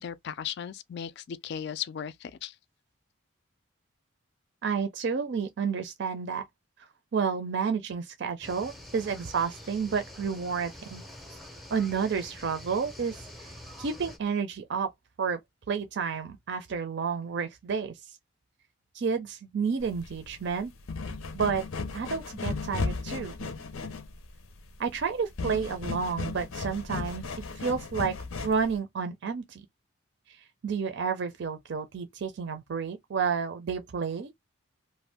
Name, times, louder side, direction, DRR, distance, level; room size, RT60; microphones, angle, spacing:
voice 1, 0.0-2.6, left 8 dB, 55° left, 0.3 m, -36 dB
voice 2, 4.6-6.5 7.1-11.0 11.3-11.4 11.7-13.5 13.8-14.9 15.2-15.4 15.7-18.0 18.9-20.7 21.3-21.7 21.9-23.5 24.8-27.2 27.6-28.2 28.4-29.7 30.3-30.4 30.6-34.3, right 6 dB, 55° right, 0.4 m, -30 dB
sound 1, 8.4-14.2, left 1 dB, ahead, 0.5 m, -46 dB
sound 2, 19.8-28.8, left 3 dB, 85° left, 0.7 m, -36 dB
2.5 x 2.2 x 3.3 m
head